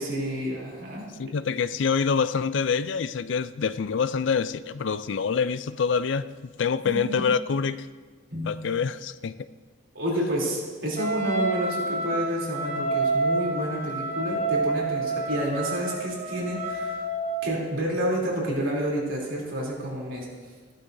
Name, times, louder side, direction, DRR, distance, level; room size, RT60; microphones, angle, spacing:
voice 1, 0.0-1.1 6.8-7.2 8.3-8.6 9.9-17.0 17.4-20.3, equal, 85° right, -3 dB, 3.2 m, -29 dB
voice 2, 1.2-6.3 6.6-7.8 8.4-9.4, left 6 dB, 70° left, 14 dB, 0.4 m, -26 dB
Wind instrument woodwind instrument, 11.0-17.6, right 2 dB, 35° right, 1.1 m, -28 dB
15.0 x 11.5 x 2.7 m, 1.5 s
head